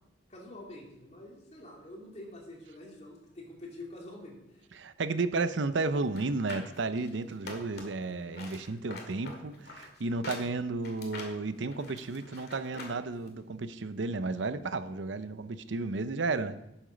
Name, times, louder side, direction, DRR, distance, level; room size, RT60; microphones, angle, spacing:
voice 1, 0.3-4.6, left 1 dB, 35° left, -1 dB, 2.6 m, -47 dB
voice 2, 4.8-16.6, right 3 dB, 75° right, 12 dB, 0.6 m, -33 dB
sound 1, 6.0-8.0 8.3-13.0 13.3-13.4, left 2 dB, 55° left, 2.1 m, -45 dB
11.5 x 7.1 x 5.2 m, 0.87 s
head